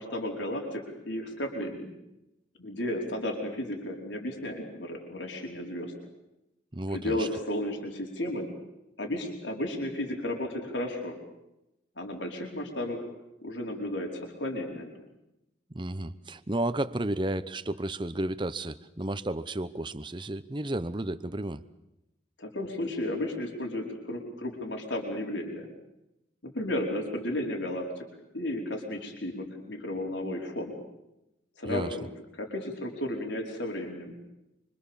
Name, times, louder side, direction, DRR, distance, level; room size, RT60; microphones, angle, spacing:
voice 1, 0.0-1.9 2.6-5.9 6.9-8.5 9.0-11.2 12.0-13.0 13.4-14.9 22.4-25.7 26.4-28.0 28.3-30.7 31.6-32.1 32.3-34.1, left 1 dB, 85° left, 1 dB, 4.8 m, -33 dB
voice 2, 6.7-7.3 15.7-21.6 31.6-32.0, right 1 dB, 25° right, 13 dB, 0.9 m, -32 dB
26.0 x 25.5 x 7.2 m, 0.91 s
head